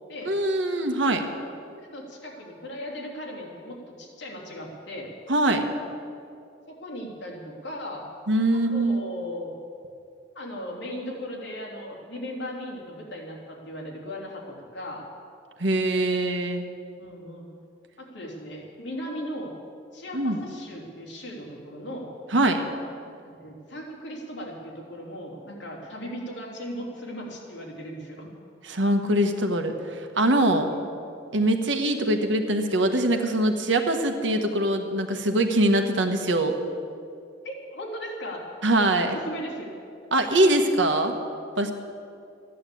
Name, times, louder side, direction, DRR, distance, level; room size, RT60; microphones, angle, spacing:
voice 1, 0.2-1.2 5.3-5.6 8.3-9.0 15.6-16.6 20.1-20.4 22.3-22.6 28.6-30.7 31.3-36.6 38.6-39.2 40.1-41.1 41.6-41.7, right 1 dB, 70° right, 5 dB, 1.4 m, -23 dB
voice 2, 1.0-1.3 1.8-5.1 6.7-8.0 8.5-9.5 10.3-15.0 17.0-17.5 18.0-19.5 19.9-22.1 23.1-28.3 30.7-30.9 37.4-38.4 39.0-39.7, equal, 65° left, -2 dB, 3.3 m, -37 dB
14.0 x 11.0 x 8.5 m, 2.5 s
head